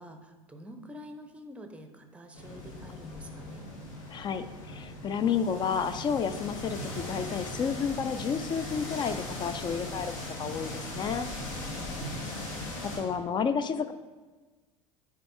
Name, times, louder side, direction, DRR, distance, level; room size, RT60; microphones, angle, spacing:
voice 1, 0.0-3.7 11.7-12.3, equal, 5° right, 6 dB, 0.6 m, -47 dB
sound 1, 2.3-13.0, left 1 dB, 65° left, 1.1 m, -39 dB
voice 2, 4.1-10.1 10.4-11.3 12.8-13.9, left 6 dB, 25° left, 11 dB, 0.3 m, -31 dB
9.3 x 3.2 x 3.8 m, 1.3 s
figure-of-eight pair, 70°, 18 cm